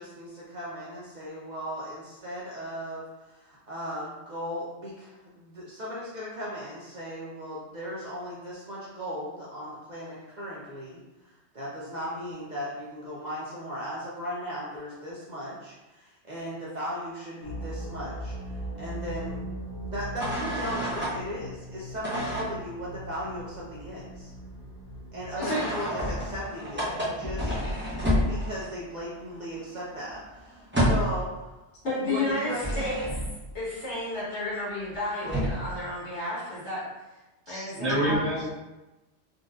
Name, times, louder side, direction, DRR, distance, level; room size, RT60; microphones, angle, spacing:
voice 1, 0.0-18.3 18.8-19.5 19.9-24.3 25.1-27.5 28.1-31.5 32.1-32.9, equal, 50° right, -7 dB, 0.6 m, -37 dB
sound 1, 17.4-27.3, equal, 50° left, 1.0 m, -40 dB
sound 2, 20.2-21.1 22.0-22.5 25.4-28.8 29.1-29.3 29.5-31.2 32.2-33.4 34.9-35.0 35.2-35.8, equal, 10° right, 0.7 m, -29 dB
voice 2, 25.3-25.6 31.8-33.2 33.5-36.8 37.5-38.2, left 1 dB, 70° left, -8 dB, 1.6 m, -31 dB
voice 3, 37.5-38.5, right 1 dB, 70° right, -9 dB, 1.4 m, -27 dB
3.8 x 2.6 x 2.4 m, 1.1 s
omnidirectional pair, 1.2 m